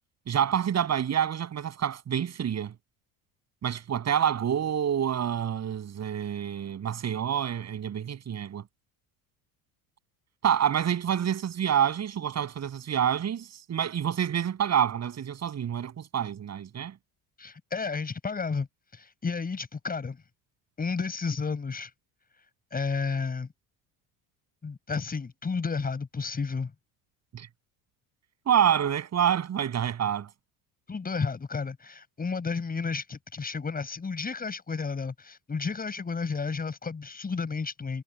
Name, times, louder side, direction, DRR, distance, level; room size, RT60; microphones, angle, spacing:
voice 1, 0.3-2.7 3.6-8.6 10.4-16.9 27.3-27.5 28.5-30.3, right 9 dB, 40° right, 8.0 m, -27 dB
voice 2, 17.4-18.7 18.9-20.2 20.8-21.9 22.7-23.5 24.6-26.7 30.9-38.0, left 4 dB, 20° left, 5.5 m, -32 dB
cardioid pair, 125°, 42 cm